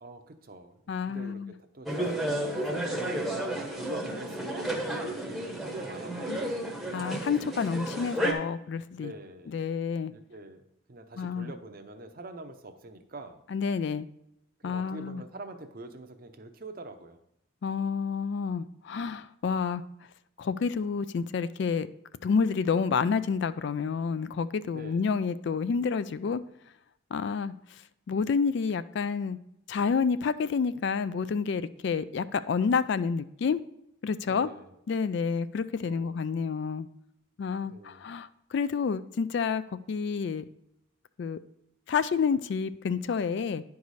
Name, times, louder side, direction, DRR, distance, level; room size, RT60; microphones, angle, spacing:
voice 1, 0.0-3.3 3.7-5.4 5.7-6.7 9.0-9.6 10.1-13.4 14.6-17.2 24.7-25.1 34.2-34.7 35.8-36.2 37.6-38.1, right 2 dB, 45° right, 0.7 m, -45 dB
voice 2, 0.9-1.5 6.9-9.1 9.5-10.1 11.2-11.5 13.5-14.1 14.6-15.2 17.6-19.8 20.4-21.9 22.2-26.4 27.1-27.5 28.1-29.4 29.7-33.6 34.0-34.5 34.9-36.9 37.4-39.6 39.9-40.4 41.2-41.4 41.9-43.6, left 5 dB, 55° left, 0.3 m, -29 dB
sound 1, 1.9-8.3, right 1 dB, ahead, 0.8 m, -32 dB
10.5 x 4.8 x 4.1 m
head